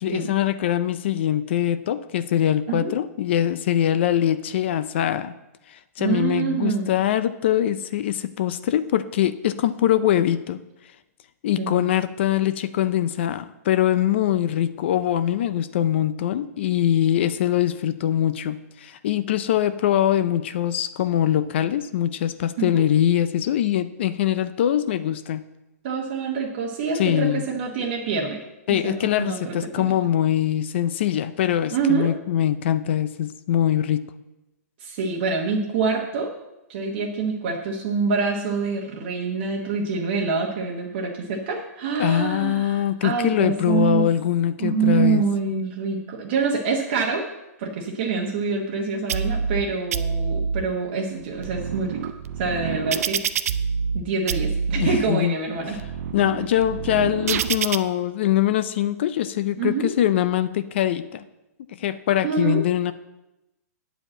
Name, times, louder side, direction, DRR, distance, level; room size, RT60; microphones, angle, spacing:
voice 1, 0.0-5.3 5.7-10.6 11.4-25.4 27.0-27.5 28.7-34.1 42.0-45.3 54.8-55.3 55.7-55.8 56.1-61.2 61.8-62.9, left 11 dB, 45° left, 14 dB, 0.4 m, -23 dB
voice 2, 6.0-6.9 11.6-11.9 22.6-22.9 25.8-28.4 28.8-29.9 31.7-32.1 34.8-36.3 36.7-44.0 44.6-47.3 47.6-53.2 53.9-55.8 59.6-59.9 62.2-62.6, right 5 dB, 40° right, 0 dB, 1.1 m, -26 dB
sound 1, 49.1-49.6 49.9-50.6 51.2-54.0 54.3-55.0 55.6-57.8, right 6 dB, 60° right, 0.5 m, -26 dB
9.1 x 5.0 x 7.6 m, 0.98 s
hypercardioid pair, 165°, 9 cm